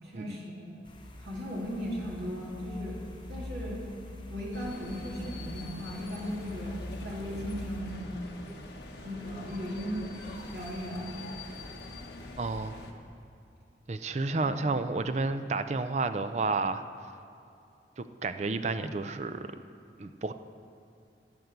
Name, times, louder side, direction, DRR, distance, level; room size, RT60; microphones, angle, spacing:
voice 1, 0.0-0.7 1.2-3.0 3.3-3.8 4.3-8.2 9.0-10.1 10.5-11.2 14.4-14.5, equal, 70° right, -5 dB, 3.3 m, -37 dB
sound 1, 0.8-7.8, left 1 dB, 30° left, 1.1 m, -44 dB
sound 2, 4.5-12.9, left 2 dB, 75° left, 1.3 m, -45 dB
voice 2, 12.4-12.8 13.9-16.8 18.0-19.5 20.0-20.3, right 3 dB, 40° right, 10 dB, 0.5 m, -31 dB
15.5 x 5.4 x 7.9 m, 2.6 s
head